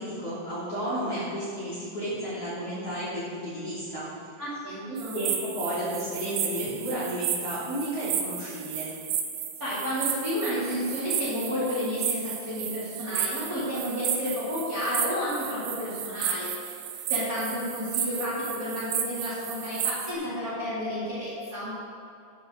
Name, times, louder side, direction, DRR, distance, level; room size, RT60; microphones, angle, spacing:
voice 1, 0.0-4.1 4.9-8.9, right 1 dB, 35° left, -10 dB, 3.3 m, -32 dB
voice 2, 4.4-5.2 9.6-21.7, equal, 25° right, -10 dB, 2.6 m, -31 dB
sound 1, 5.0-20.1, right 8 dB, 75° right, 2.5 m, -33 dB
14.0 x 9.2 x 4.0 m, 2.5 s
omnidirectional pair, 5.5 m